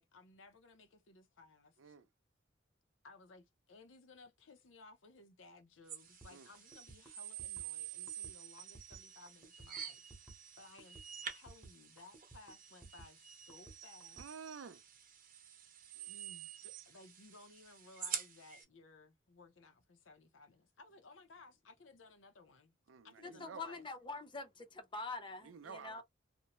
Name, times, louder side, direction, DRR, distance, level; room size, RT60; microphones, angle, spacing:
voice 1, 0.0-2.0 3.0-10.0 10.6-14.2 16.1-22.7 23.0-23.9, left 3 dB, 75° left, 0.7 m, -60 dB
sound 1, 5.9-18.6, right 8 dB, 45° right, 0.7 m, -48 dB
sound 2, 6.2-14.3, right 2 dB, 5° right, 0.9 m, -57 dB
voice 2, 14.2-14.8 15.9-16.1 22.9-23.8 25.4-26.0, right 6 dB, 80° right, 0.4 m, -51 dB
voice 3, 23.2-26.0, left 3 dB, 25° left, 0.6 m, -45 dB
2.6 x 2.1 x 2.9 m
head